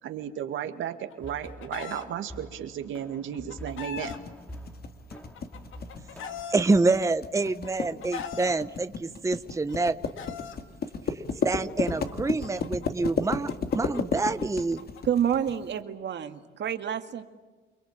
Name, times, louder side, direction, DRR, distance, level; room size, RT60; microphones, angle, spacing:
voice 1, 0.0-4.2, right 9 dB, 80° right, 7 dB, 2.2 m, -34 dB
Chicken rooster, 0.9-2.0 3.1-4.2 5.1-6.6 7.4-8.5 9.5-10.6 11.7-15.0, left 6 dB, 80° left, 2.2 m, -40 dB
sound 1, 1.2-6.5, equal, 5° left, 2.5 m, -46 dB
sound 2, 4.0-15.6, left 5 dB, 50° left, 2.5 m, -32 dB
voice 2, 6.5-9.9 11.5-14.8, right 3 dB, 15° right, 11 dB, 0.8 m, -26 dB
voice 3, 15.0-17.2, right 9 dB, 60° right, 8 dB, 2.1 m, -28 dB
28.5 x 22.0 x 8.9 m, 1.3 s
cardioid pair, 90°, 20 cm